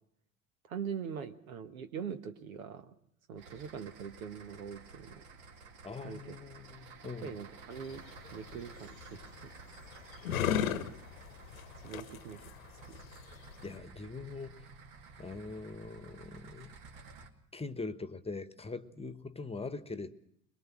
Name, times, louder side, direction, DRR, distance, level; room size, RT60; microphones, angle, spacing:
voice 1, 0.6-2.9 3.3-5.3 6.0-6.4 7.2-8.0 8.3-9.5 11.8-12.5 12.9-13.0, right 7 dB, 80° right, 1.4 m, -42 dB
sound 1, 3.4-17.3, right 4 dB, 60° right, 2.3 m, -53 dB
voice 2, 5.8-7.4 10.2-10.3 13.6-14.7 15.2-16.7 17.5-20.1, left 3 dB, 15° left, 1.2 m, -42 dB
sound 2, 7.7-13.8, left 9 dB, 80° left, 1.1 m, -37 dB
23.0 x 22.0 x 6.1 m
figure-of-eight pair, 65°, 41 cm